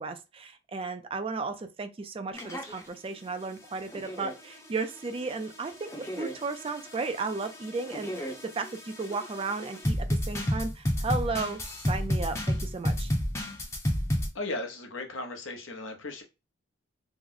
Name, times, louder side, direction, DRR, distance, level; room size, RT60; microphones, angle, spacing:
voice 1, 0.0-5.9 6.2-13.1, right 4 dB, 30° right, 0.3 m, -34 dB
sound 1, 2.3-2.8 3.7-14.3, equal, 15° left, 0.6 m, -32 dB
voice 2, 14.3-16.2, left 2 dB, 85° left, 0.8 m, -36 dB
3.0 x 2.0 x 3.7 m
head